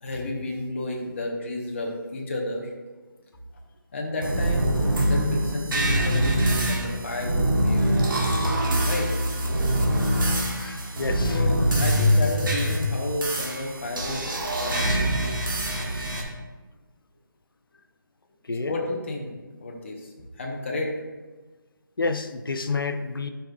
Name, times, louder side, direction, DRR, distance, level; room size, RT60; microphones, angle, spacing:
voice 1, 0.0-2.7 3.9-7.8 8.8-9.1 11.3-14.3 14.5-14.8 18.6-19.3 19.6-20.9, left 2 dB, 35° left, 0 dB, 1.1 m, -31 dB
sound 1, 4.2-16.2, equal, 70° right, 1.6 m, -24 dB
voice 2, 10.4-11.4 18.5-18.7 22.0-23.3, left 4 dB, 80° left, 9 dB, 0.7 m, -29 dB
12.0 x 5.3 x 2.4 m, 1.3 s
figure-of-eight pair, 170°, 12 cm